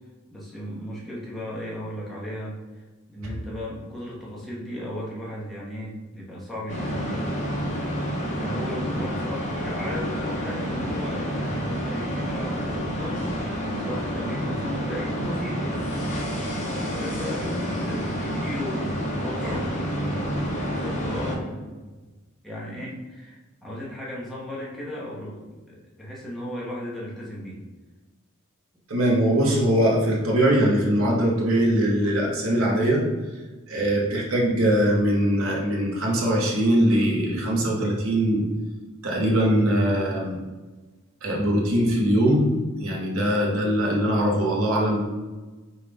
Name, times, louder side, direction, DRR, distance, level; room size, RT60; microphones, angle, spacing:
voice 1, 0.3-2.6 3.1-7.3 8.4-16.1 16.7-22.0 22.4-27.6, left 1 dB, ahead, -7 dB, 1.0 m, -36 dB
sound 1, 6.7-21.4, equal, 35° left, 0.9 m, -29 dB
voice 2, 28.9-33.1 33.7-38.5 39.0-40.4 41.2-42.5 42.8-45.0, right 1 dB, 70° right, -2 dB, 1.0 m, -21 dB
5.5 x 2.4 x 3.4 m, 1.2 s
head